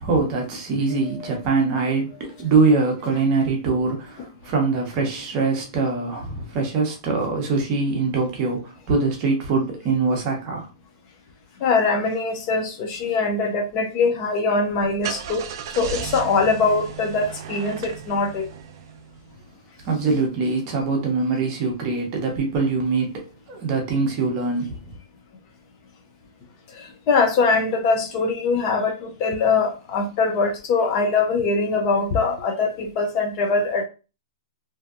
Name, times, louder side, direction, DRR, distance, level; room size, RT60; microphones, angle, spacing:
voice 1, 0.0-10.7 19.8-24.8, right 4 dB, 30° right, 0.8 m, -23 dB
voice 2, 11.6-18.5 26.7-33.8, left 4 dB, 30° left, 0.5 m, -22 dB
Car / Engine starting, 14.6-19.3, right 7 dB, 50° right, 0.3 m, -35 dB
2.6 x 2.1 x 2.4 m
hypercardioid pair, 160°, 3 cm